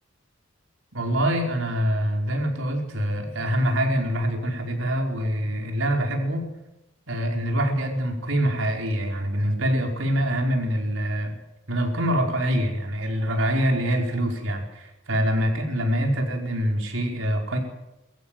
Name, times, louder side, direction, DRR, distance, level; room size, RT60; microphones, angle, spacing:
voice 1, 0.9-6.5 7.1-11.4 11.7-17.6, equal, 80° right, 2 dB, 5.0 m, -25 dB
23.5 x 14.5 x 9.3 m, 0.96 s
head